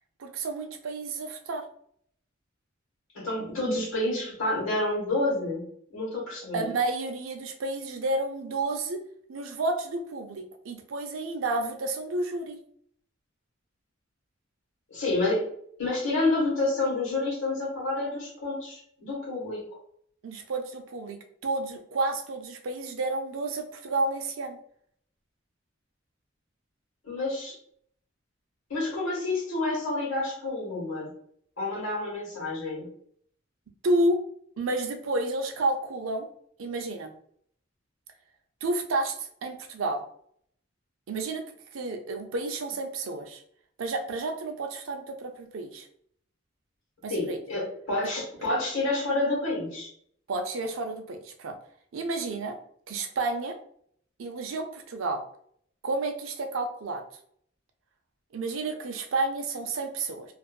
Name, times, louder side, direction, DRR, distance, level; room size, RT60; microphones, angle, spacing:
voice 1, 0.2-1.6 6.5-9.0 9.3-12.6 20.2-24.6 33.8-34.2 34.6-36.3 36.6-37.1 38.6-40.0 41.1-41.4 41.7-43.4 43.8-45.9 47.0-47.4 50.3-51.6 51.9-52.6 52.9-53.5 54.2-55.2 55.8-57.0 58.3-60.3, right 2 dB, 85° right, 5 dB, 0.5 m, -30 dB
voice 2, 3.1-5.6 5.9-6.6 14.9-15.5 15.8-19.7 27.0-27.6 28.7-31.1 31.6-32.9 47.1-49.9, left 2 dB, 80° left, -4 dB, 1.2 m, -29 dB
2.6 x 2.4 x 2.2 m, 0.64 s
head